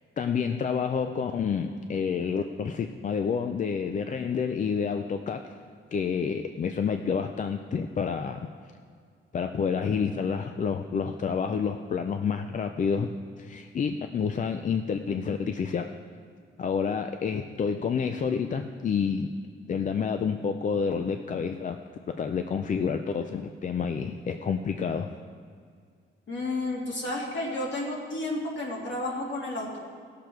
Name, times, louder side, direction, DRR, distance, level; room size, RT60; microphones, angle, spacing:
voice 1, 0.2-5.5 5.9-8.5 9.3-13.1 13.4-16.0 16.6-19.3 19.7-21.8 22.1-25.1, left 6 dB, 35° left, 6 dB, 0.4 m, -29 dB
voice 2, 26.3-29.8, left 2 dB, 60° left, -3 dB, 2.6 m, -31 dB
17.5 x 6.7 x 4.5 m, 2.1 s
wide cardioid pair, 160°, 21 cm